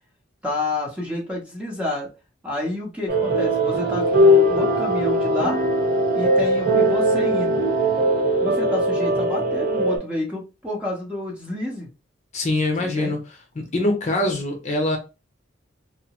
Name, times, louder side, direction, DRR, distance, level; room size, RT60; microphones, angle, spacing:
voice 1, 0.4-2.1 2.4-5.6 6.1-7.6 8.4-11.9 12.8-13.2, left 1 dB, 5° right, 0.8 m, -29 dB
sound 1, 3.1-10.0, equal, 50° right, 1.0 m, -20 dB
voice 2, 12.3-13.2 13.5-15.0, left 2 dB, 35° left, 0.7 m, -23 dB
2.8 x 2.0 x 2.8 m
head